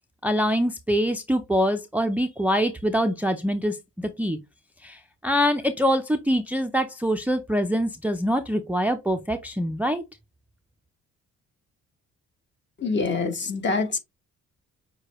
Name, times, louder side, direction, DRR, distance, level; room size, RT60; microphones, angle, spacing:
voice 1, 0.2-3.8 4.2-4.4 4.8-10.0, equal, 5° right, 0.4 m, -24 dB
voice 2, 12.8-14.0, left 4 dB, 40° left, 1.1 m, -25 dB
6.4 x 2.2 x 3.0 m
cardioid pair, 90°, 30 cm